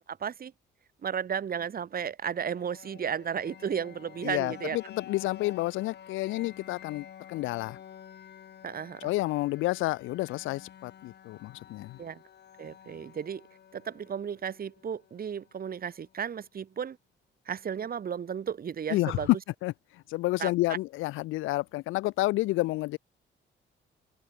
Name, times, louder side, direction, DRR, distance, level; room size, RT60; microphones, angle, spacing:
voice 1, 0.1-0.5 1.0-4.8 8.6-9.1 12.0-12.2 12.6-13.5 13.7-17.0 17.5-19.3 20.4-20.5, right 7 dB, 50° right, 1.9 m, -34 dB
sound 1, 2.3-16.2, left 9 dB, 55° left, 1.6 m, -51 dB
voice 2, 4.2-7.8 9.0-12.0 18.9-19.4 19.6-19.7 20.1-23.0, left 18 dB, 90° left, 0.6 m, -29 dB
cardioid pair, 90°, 20 cm